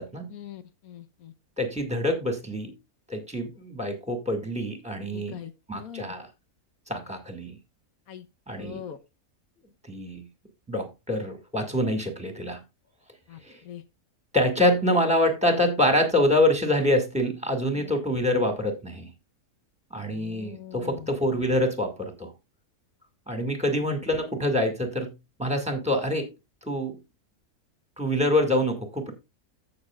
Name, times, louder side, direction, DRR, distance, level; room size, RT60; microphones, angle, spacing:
voice 1, 0.3-1.3 5.1-6.1 8.1-8.2 8.6-9.0 13.3-13.4 13.6-13.8 17.7-17.9 20.0-21.1, left 10 dB, 70° left, 1.4 m, -42 dB
voice 2, 1.6-2.7 3.1-5.4 5.7-6.3 6.9-7.6 8.5-8.8 9.9-10.2 10.7-12.6 13.4-13.6 14.3-19.1 19.9-22.3 23.3-25.1 25.4-26.3 26.6-27.0 28.0-29.1, left 1 dB, 5° right, 2.0 m, -26 dB
15.0 x 6.5 x 2.4 m
omnidirectional pair, 1.6 m